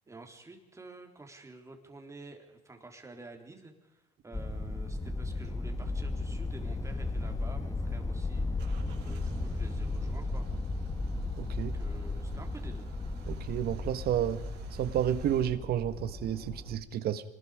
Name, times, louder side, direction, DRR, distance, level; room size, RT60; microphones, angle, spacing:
voice 1, 0.1-10.5 11.6-12.8, right 2 dB, 15° right, 3.9 m, -50 dB
sound 1, 4.3-16.8, left 2 dB, 20° left, 1.9 m, -35 dB
Car / Engine starting / Idling, 8.6-15.5, right 4 dB, 85° right, 4.5 m, -49 dB
voice 2, 11.4-11.7 13.3-14.4 14.7-17.2, right 10 dB, 65° right, 1.7 m, -31 dB
26.5 x 20.0 x 5.2 m
cardioid pair, 110°, 17 cm